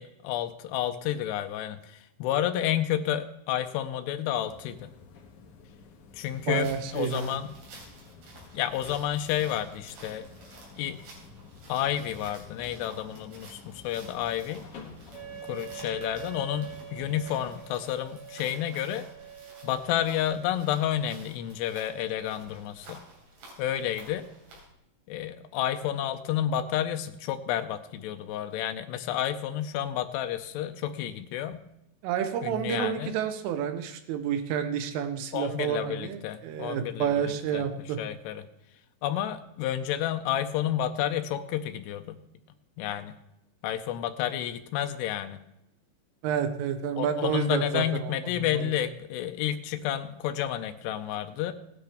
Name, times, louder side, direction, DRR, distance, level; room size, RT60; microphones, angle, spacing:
voice 1, 0.0-4.9 6.1-7.5 8.5-10.2 10.8-11.0 11.7-14.6 15.4-19.1 19.6-23.0 23.6-24.3 25.1-31.6 32.4-33.2 35.3-37.6 38.0-38.4 39.0-42.2 42.8-43.2 43.6-45.4 47.0-51.5, left 11 dB, 90° left, 7 dB, 2.3 m, -30 dB
sound 1, 4.5-17.6, left 4 dB, 65° left, 2.0 m, -50 dB
sound 2, 6.3-24.7, right 2 dB, 65° right, 5.6 m, -52 dB
voice 2, 6.5-7.4 32.0-38.0 46.2-48.7, right 8 dB, 85° right, 8 dB, 3.5 m, -30 dB
Wind instrument woodwind instrument, 15.1-20.2, right 10 dB, 25° right, 3.0 m, -44 dB
17.5 x 10.5 x 3.4 m, 0.86 s
omnidirectional pair, 5.6 m